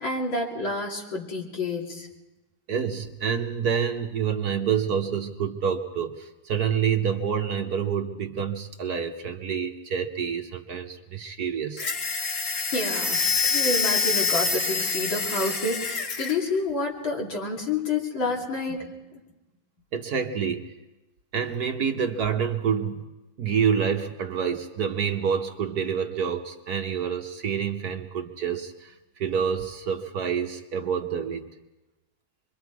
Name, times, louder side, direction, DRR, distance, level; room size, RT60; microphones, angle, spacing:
voice 1, 0.0-2.1 12.7-18.9, left 2 dB, 75° left, -2 dB, 3.8 m, -29 dB
voice 2, 2.7-11.9 19.9-20.7 21.3-23.1 23.4-31.5, right 7 dB, 55° right, 5 dB, 1.4 m, -27 dB
sound 1, 11.8-16.4, left 4 dB, 40° left, 1.6 m, -26 dB
25.5 x 23.5 x 4.7 m, 1.1 s
omnidirectional pair, 2.1 m